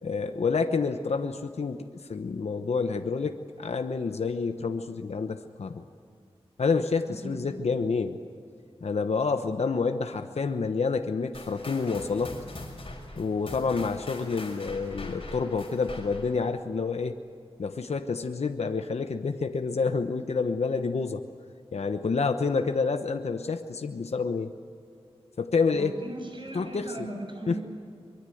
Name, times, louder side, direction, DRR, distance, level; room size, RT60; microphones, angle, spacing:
voice 1, 0.0-5.8 6.6-8.2 8.8-12.3 13.1-17.2 17.6-21.2 21.7-24.5 25.4-26.0 26.5-27.1 27.5-27.6, left 4 dB, 85° left, 7 dB, 1.0 m, -28 dB
voice 2, 7.1-7.4 25.7-27.6, right 1 dB, 50° right, 3 dB, 6.9 m, -38 dB
sound 1, 11.3-16.4, left 2 dB, 55° left, 5.9 m, -42 dB
23.5 x 23.5 x 7.9 m, 2.4 s
wide cardioid pair, 80°, 11 cm